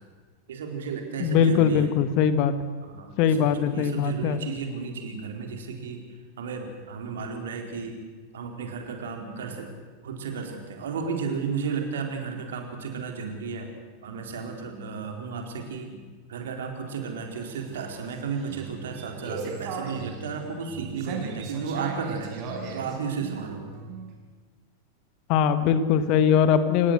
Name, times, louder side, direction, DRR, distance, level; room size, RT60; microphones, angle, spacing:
voice 1, 0.5-1.9 2.9-6.0 6.4-8.0 8.3-9.7 10.0-13.7 14.0-22.3 22.7-23.7, right 5 dB, 60° right, 3 dB, 4.2 m, -33 dB
voice 2, 1.2-2.5 3.2-4.4 25.3-26.9, left 7 dB, 45° left, 11 dB, 1.6 m, -21 dB
sound 1, 17.3-24.1, right 4 dB, 40° right, 5.2 m, -37 dB
29.0 x 17.0 x 8.0 m, 1.5 s
figure-of-eight pair, 90°, 0 cm